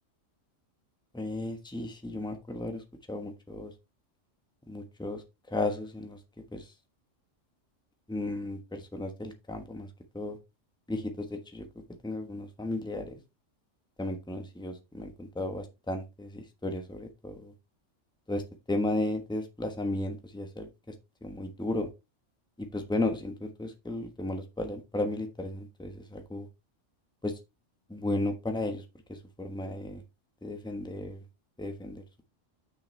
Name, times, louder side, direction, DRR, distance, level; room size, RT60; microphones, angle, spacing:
voice 1, 1.1-2.8 3.1-3.7 4.7-5.2 5.5-6.2 6.5-6.7 8.1-9.9 10.1-10.4 10.9-11.7 12.0-13.1 14.0-17.5 18.3-18.4 18.7-20.7 21.2-21.9 22.6-26.5 27.2-27.3 27.9-28.8 29.1-30.0 30.4-31.2 31.6-32.0, left 2 dB, 5° left, 5 dB, 1.2 m, -34 dB
8.1 x 6.4 x 3.3 m, 0.24 s
omnidirectional pair, 1.3 m